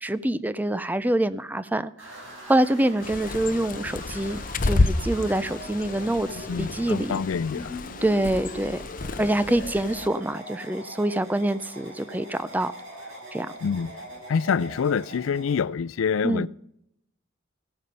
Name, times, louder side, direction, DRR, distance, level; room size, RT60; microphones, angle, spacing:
voice 1, 0.0-7.1 8.0-8.8 9.2-12.7 13.3-13.5 16.2-16.5, right 1 dB, 10° right, 0.4 m, -26 dB
sound 1, 2.0-15.6, equal, 75° right, 6.3 m, -42 dB
Bird, 3.0-10.1, left 2 dB, 40° left, 0.6 m, -30 dB
voice 2, 6.5-7.8 13.6-13.9 14.3-16.5, left 6 dB, 85° left, 0.4 m, -26 dB
16.0 x 9.3 x 5.4 m
head